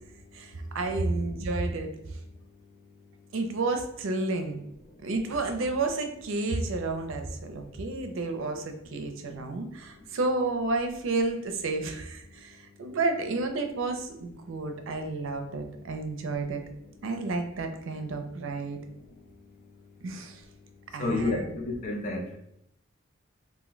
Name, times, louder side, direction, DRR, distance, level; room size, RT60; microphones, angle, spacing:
voice 1, 0.3-1.9 3.3-4.6 5.0-16.6 17.0-18.8 20.0-20.4 20.9-21.4, right 3 dB, 70° right, 6 dB, 0.4 m, -31 dB
voice 2, 0.9-1.2 21.0-22.4, left 2 dB, 40° left, 1 dB, 0.5 m, -31 dB
2.5 x 2.1 x 3.9 m, 0.77 s
head